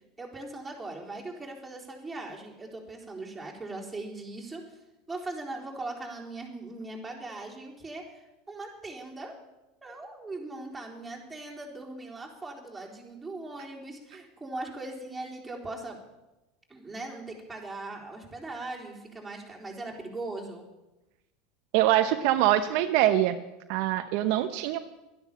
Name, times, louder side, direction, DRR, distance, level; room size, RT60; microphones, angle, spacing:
voice 1, 0.2-4.6 5.1-9.3 9.8-16.0 16.7-20.7, right 2 dB, 10° right, -3 dB, 4.0 m, -40 dB
voice 2, 21.7-23.4 23.7-24.8, right 13 dB, 65° right, 9 dB, 0.8 m, -24 dB
12.0 x 10.5 x 7.2 m, 1.0 s
hypercardioid pair, 95°, 0 cm